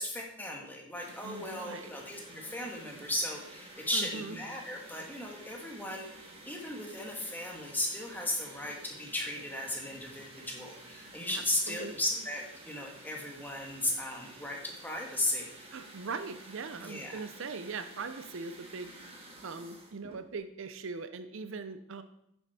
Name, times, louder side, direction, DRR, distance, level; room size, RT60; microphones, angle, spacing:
voice 1, 0.0-15.5 16.8-17.2, left 1 dB, 10° left, -1 dB, 1.5 m, -36 dB
sound 1, 0.9-20.3, right 2 dB, 25° right, 1.6 m, -51 dB
voice 2, 1.2-1.9 3.9-4.4 11.3-11.9 15.7-18.9 19.4-22.0, right 4 dB, 60° right, 10 dB, 0.5 m, -40 dB
9.2 x 7.1 x 4.2 m, 0.78 s
head